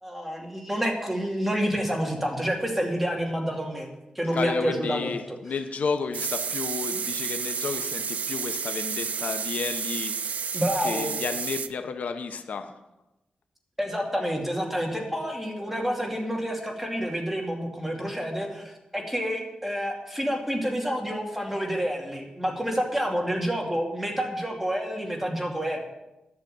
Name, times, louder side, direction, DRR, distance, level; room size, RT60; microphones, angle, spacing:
voice 1, 0.0-3.9 4.2-5.2 10.5-11.1 13.8-25.9, equal, 5° right, 0 dB, 2.5 m, -28 dB
voice 2, 4.3-10.4 10.8-12.7, left 5 dB, 80° left, 8 dB, 0.9 m, -32 dB
sound 1, 6.1-11.7, right 6 dB, 75° right, 0.5 m, -31 dB
11.0 x 6.6 x 8.8 m, 0.97 s
wide cardioid pair, 120°, 3 cm